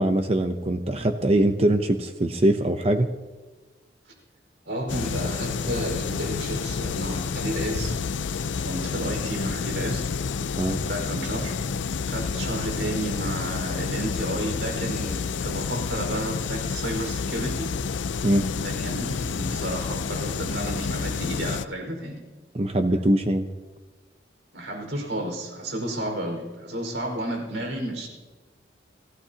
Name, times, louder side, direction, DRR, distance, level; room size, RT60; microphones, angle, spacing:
voice 1, 0.0-3.1 10.6-10.8 18.2-18.5 22.5-23.5, right 1 dB, 35° right, 6 dB, 0.7 m, -22 dB
voice 2, 4.6-8.0 8.6-10.0 10.8-11.6 12.1-17.7 18.6-22.2 24.5-28.1, right 1 dB, 75° right, 1 dB, 5.0 m, -31 dB
sound 1, 4.9-21.7, left 5 dB, 80° left, 0.5 m, -29 dB
29.5 x 16.5 x 2.9 m, 1.3 s
head